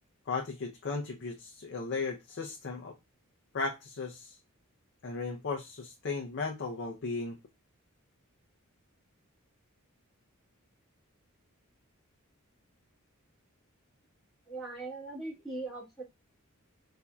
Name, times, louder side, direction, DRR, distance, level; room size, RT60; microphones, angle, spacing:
voice 1, 0.3-3.0 3.5-4.4 5.0-7.4, left 4 dB, 55° left, 1 dB, 0.6 m, -36 dB
voice 2, 14.5-16.0, right 2 dB, ahead, -5 dB, 1.9 m, -40 dB
4.2 x 2.7 x 2.3 m, 0.22 s
head